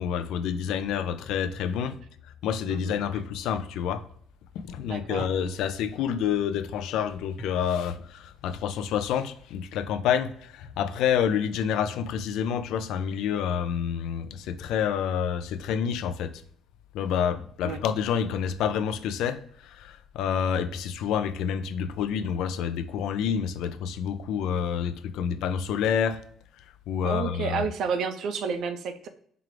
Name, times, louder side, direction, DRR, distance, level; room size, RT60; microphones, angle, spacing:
voice 1, 0.0-2.0 2.4-4.0 4.6-16.4 16.9-26.2 26.9-27.7, left 8 dB, 80° left, 0.3 m, -28 dB
sound 1, 2.7-3.0 5.2-5.8 7.4-7.7 9.8-10.3, right 2 dB, ahead, 0.8 m, -46 dB
voice 2, 2.7-3.0 4.9-5.3 17.6-17.8 27.0-29.1, right 5 dB, 60° right, 0.5 m, -30 dB
4.6 x 2.4 x 3.2 m
cardioid pair, 160°, 0 cm